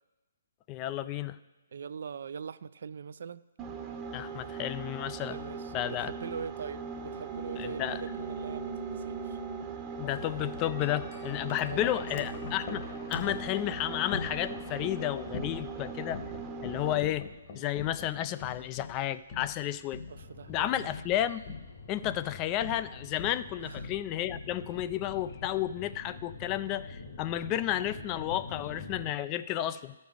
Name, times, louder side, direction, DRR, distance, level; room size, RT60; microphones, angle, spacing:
voice 1, 0.7-1.4 4.1-5.4 5.7-6.1 7.6-8.0 10.0-16.2 16.6-17.3 17.5-20.0 20.5-21.6 21.9-29.9, left 12 dB, 25° left, 0.3 m, -32 dB
voice 2, 1.7-3.5 5.3-9.4 11.7-12.1 20.1-20.9 23.6-23.8, right 6 dB, 65° right, 0.3 m, -42 dB
sound 1, 3.6-17.1, right 5 dB, 20° right, 0.8 m, -40 dB
Wind chime, 10.0-26.2, left 4 dB, 40° left, 1.4 m, -43 dB
sound 2, 20.1-29.1, left 3 dB, 60° left, 2.1 m, -46 dB
13.0 x 5.3 x 6.3 m
hypercardioid pair, 140°, 0 cm